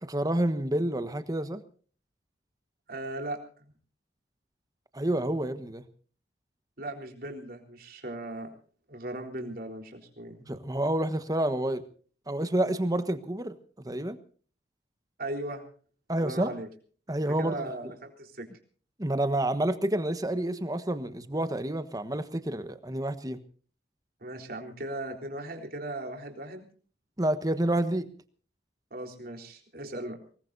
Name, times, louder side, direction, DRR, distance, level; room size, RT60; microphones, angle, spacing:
voice 1, 0.0-1.6 4.9-5.8 10.4-11.8 12.3-13.6 13.8-14.2 16.1-16.5 17.1-17.6 19.0-23.4 27.2-28.1, right 1 dB, 20° right, 11 dB, 1.3 m, -29 dB
voice 2, 2.9-3.6 6.8-8.5 8.9-10.4 15.2-15.6 16.2-16.7 17.3-18.5 24.2-26.7 28.9-30.2, right 1 dB, 55° right, 3 dB, 3.9 m, -38 dB
24.5 x 19.5 x 2.7 m, 0.43 s
head